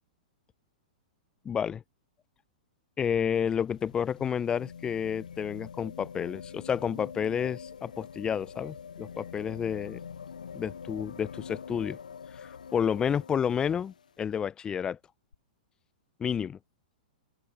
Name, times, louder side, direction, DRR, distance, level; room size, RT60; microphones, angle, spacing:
voice 1, 1.4-1.8 3.0-10.0 10.5-12.0 12.3-15.0 16.2-16.6, left 8 dB, 20° left, 0.5 m, -30 dB
sound 1, 3.1-14.1 15.3-15.4, left 6 dB, 80° left, 0.5 m, -45 dB
open air
figure-of-eight pair, 110°, 4 cm